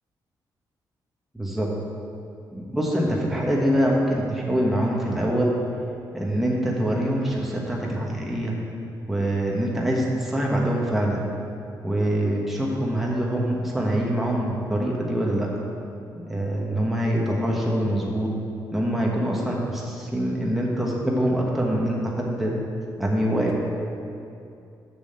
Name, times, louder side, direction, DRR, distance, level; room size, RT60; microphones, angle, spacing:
voice 1, 1.3-1.7 2.5-5.5 6.1-8.5 9.1-11.2 11.8-15.5 16.3-18.3 18.7-22.5 23.0-23.5, right 1 dB, 5° right, -3 dB, 1.2 m, -24 dB
7.0 x 6.3 x 7.7 m, 2.6 s
wide cardioid pair, 155°, 8 cm